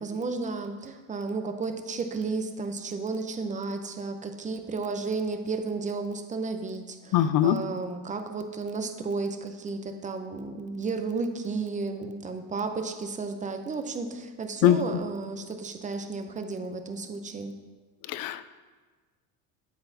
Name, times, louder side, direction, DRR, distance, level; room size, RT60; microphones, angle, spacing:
voice 1, 0.0-17.6, right 4 dB, 20° right, 7 dB, 0.6 m, -33 dB
voice 2, 7.1-7.6 14.6-14.8 18.1-18.5, left 12 dB, 50° left, 14 dB, 0.5 m, -21 dB
8.0 x 7.8 x 2.7 m, 1.4 s
supercardioid pair, 120°, 42 cm